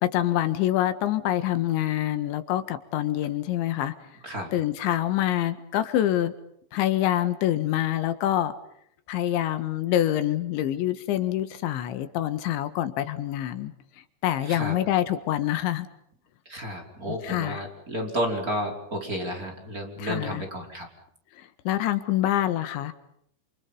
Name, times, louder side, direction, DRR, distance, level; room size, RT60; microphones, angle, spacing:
voice 1, 0.0-3.9 4.5-6.3 6.7-8.5 9.1-13.7 14.2-15.9 17.1-17.6 20.0-20.4 21.7-22.9, left 12 dB, 85° left, 11 dB, 3.9 m, -26 dB
voice 2, 16.5-20.9, equal, 20° right, 1 dB, 4.8 m, -31 dB
29.0 x 28.5 x 5.6 m, 0.71 s
omnidirectional pair, 5.1 m